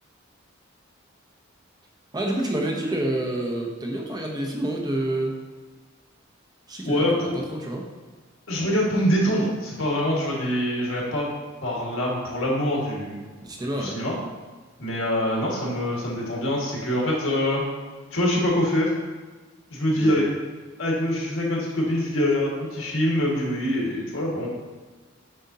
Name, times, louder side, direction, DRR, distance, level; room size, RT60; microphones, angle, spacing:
voice 1, 2.1-5.4 6.7-7.8 13.4-14.0 19.9-20.1, right 1 dB, 20° right, -1 dB, 0.7 m, -28 dB
voice 2, 6.8-7.3 8.5-11.3 11.6-13.2 13.8-14.2 14.8-17.6 18.1-18.9 19.7-20.3 20.8-24.5, equal, 75° left, -3 dB, 1.8 m, -24 dB
7.5 x 5.0 x 2.8 m, 1.3 s
head